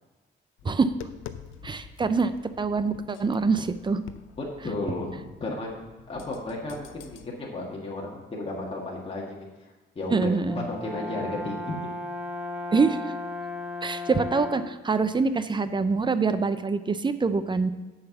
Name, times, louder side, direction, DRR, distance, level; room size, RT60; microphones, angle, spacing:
Tap, 0.6-7.3, left 9 dB, 85° left, 0.6 m, -47 dB
voice 1, 1.6-4.0 10.1-10.6 12.7-13.0 13.8-17.7, right 4 dB, 25° right, 12 dB, 0.5 m, -25 dB
voice 2, 4.4-5.7 6.1-9.5 10.0-10.3 10.7-11.7, left 2 dB, 30° left, -4 dB, 1.8 m, -33 dB
Brass instrument, 10.5-14.9, left 2 dB, 5° right, 0.9 m, -35 dB
6.8 x 5.7 x 7.1 m, 1.2 s
cardioid pair, 90°, 20 cm